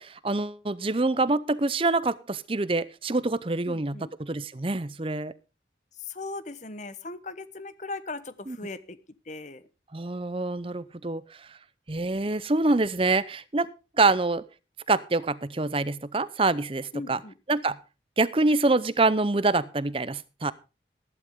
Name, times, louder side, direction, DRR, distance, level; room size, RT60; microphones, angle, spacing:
voice 1, 0.0-5.3 8.5-8.6 9.9-11.2 11.9-13.7 14.0-14.4 14.9-17.2 17.5-17.8 18.2-20.5, right 3 dB, 30° right, 17 dB, 0.7 m, -26 dB
voice 2, 3.7-4.1 6.0-9.0 9.2-9.7 16.9-17.3, left 3 dB, 40° left, 14 dB, 1.0 m, -38 dB
14.5 x 11.5 x 3.6 m, 0.31 s
head